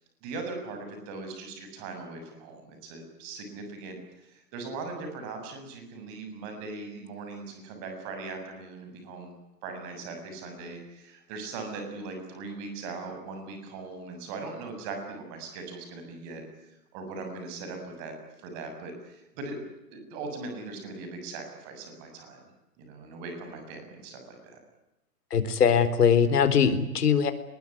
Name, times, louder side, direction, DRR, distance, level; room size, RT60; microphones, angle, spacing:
voice 1, 0.2-9.3 9.6-22.4 22.8-24.6, right 3 dB, 25° right, 5 dB, 7.2 m, -40 dB
voice 2, 25.3-27.3, left 7 dB, 70° left, 11 dB, 4.1 m, -21 dB
23.0 x 22.0 x 9.8 m, 0.93 s
hypercardioid pair, 170°, 48 cm